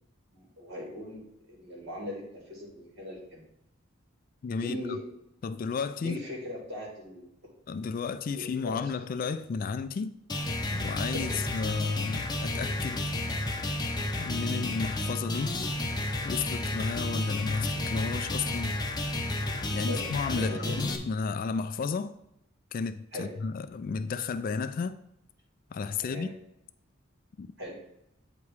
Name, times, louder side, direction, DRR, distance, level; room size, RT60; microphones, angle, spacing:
voice 1, 0.3-3.4 4.6-5.0 6.0-7.3 8.4-8.8 11.1-11.4 19.9-20.0 20.4-20.8 23.1-23.3 26.0-26.3 27.6-27.8, left 1 dB, 60° right, 2.6 m, -39 dB
voice 2, 4.4-4.8 5.4-6.2 7.7-10.2 10.7-13.0 14.1-15.6 16.2-18.8 19.7-22.1 22.7-25.0 25.7-26.3 27.4-27.5, left 5 dB, 45° left, 0.3 m, -32 dB
sound 1, 10.3-21.0, left 1 dB, 20° left, 0.7 m, -32 dB
8.2 x 3.0 x 4.7 m
head